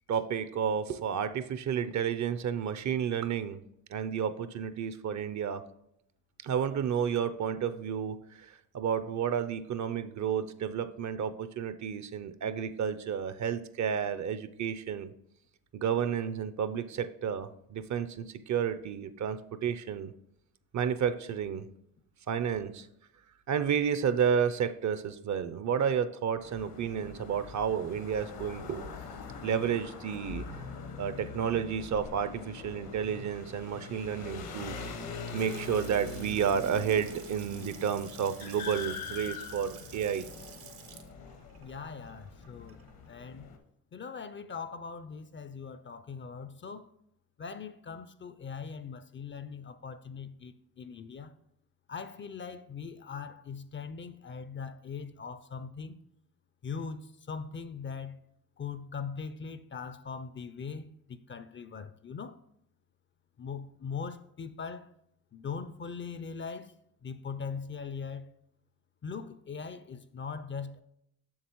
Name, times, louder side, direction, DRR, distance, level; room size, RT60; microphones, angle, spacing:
voice 1, 0.1-3.6 3.9-5.6 6.4-15.1 15.7-20.1 20.7-21.7 22.3-22.9 23.5-28.9 29.4-30.5 31.0-34.8 35.3-40.2, right 8 dB, 50° right, 0.6 m, -31 dB
sound 1, 26.4-43.6, left 5 dB, 75° left, 1.1 m, -43 dB
Water tap faucet / Sink (filling or washing) / Splash splatter, 35.0-43.1, right 8 dB, 70° right, 1.0 m, -52 dB
voice 2, 41.6-42.8 43.1-43.5 43.9-46.9 47.4-51.3 51.9-56.0 56.6-58.2 58.6-62.4 63.4-64.9 65.3-66.8 67.0-68.3 69.0-70.8, left 5 dB, 30° left, 0.4 m, -41 dB
7.3 x 6.6 x 3.0 m
supercardioid pair, 70°, 38 cm